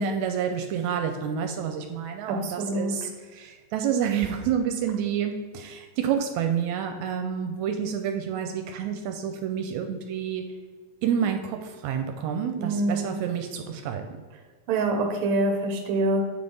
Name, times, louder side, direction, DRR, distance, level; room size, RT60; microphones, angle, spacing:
voice 1, 0.0-10.4 11.0-14.0, right 8 dB, 80° right, 5 dB, 1.9 m, -29 dB
voice 2, 2.3-2.9 12.6-13.1 14.7-16.2, right 2 dB, 65° right, 3 dB, 1.5 m, -25 dB
8.1 x 3.5 x 5.3 m, 1.5 s
omnidirectional pair, 3.4 m